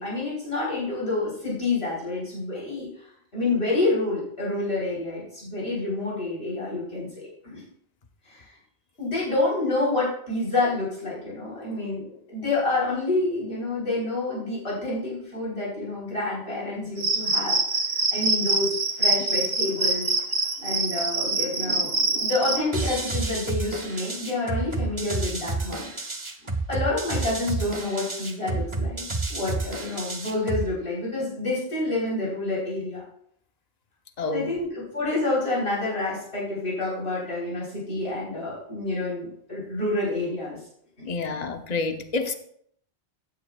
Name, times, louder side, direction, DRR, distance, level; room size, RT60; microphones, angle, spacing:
voice 1, 0.0-2.9 3.3-7.6 8.3-8.5 9.0-17.8 18.1-20.1 20.6-25.9 26.7-29.0 29.3-33.0 34.3-40.6 41.0-41.1, left 2 dB, 65° left, 4.3 m, -28 dB
Cricket, 17.0-22.6, right 3 dB, 65° right, 1.4 m, -25 dB
sound 1, 22.7-30.7, right 3 dB, 30° right, 1.0 m, -30 dB
voice 2, 34.2-34.5 41.0-42.3, left 3 dB, 40° left, 0.9 m, -28 dB
14.5 x 9.2 x 2.4 m
omnidirectional pair, 1.1 m